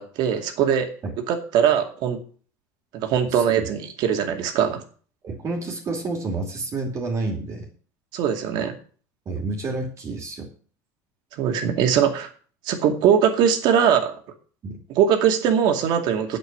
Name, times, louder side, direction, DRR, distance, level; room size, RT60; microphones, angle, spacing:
voice 1, 0.0-0.9 1.3-2.2 2.9-4.8 8.1-8.8 11.4-12.3 12.6-14.1 15.0-16.4, right 8 dB, 60° right, 5 dB, 2.3 m, -21 dB
voice 2, 3.3-3.7 4.6-4.7 5.2-7.7 9.3-10.5 14.6-14.8, right 3 dB, 35° right, 1 dB, 2.8 m, -29 dB
8.1 x 7.8 x 7.5 m, 0.42 s
supercardioid pair, 115°, 8 cm